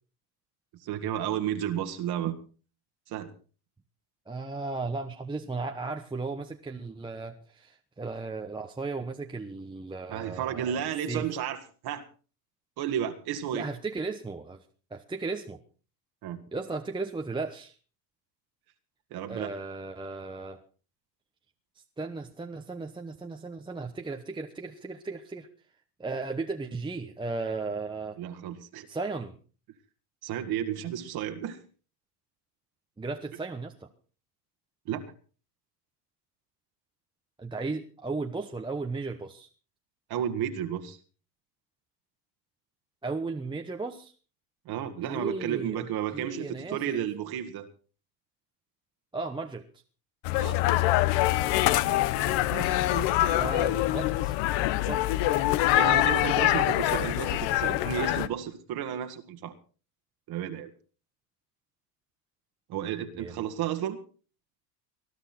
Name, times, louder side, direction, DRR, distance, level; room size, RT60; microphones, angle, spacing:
voice 1, 0.8-2.4 3.1-3.3 10.1-12.1 12.8-13.7 16.2-16.4 19.1-19.5 28.2-28.9 30.2-31.6 34.9-35.1 40.1-41.0 44.7-47.7 50.4-50.6 51.8-53.2 55.8-59.5 60.3-60.7 62.7-64.0, right 10 dB, 50° right, 5 dB, 1.8 m, -33 dB
voice 2, 4.3-11.3 13.5-14.6 14.9-15.6 16.5-17.8 19.3-20.6 21.7-25.5 26.0-28.2 28.9-29.4 33.0-33.9 37.4-39.5 43.0-44.1 45.1-45.9 46.1-47.1 49.1-49.7 53.3-54.3 54.8-55.0 63.1-63.4, right 3 dB, 10° right, 3 dB, 1.0 m, -35 dB
sound 1, 50.2-58.3, left 15 dB, 60° left, 1.0 m, -25 dB
20.5 x 11.5 x 4.3 m, 0.38 s
supercardioid pair, 105°, 48 cm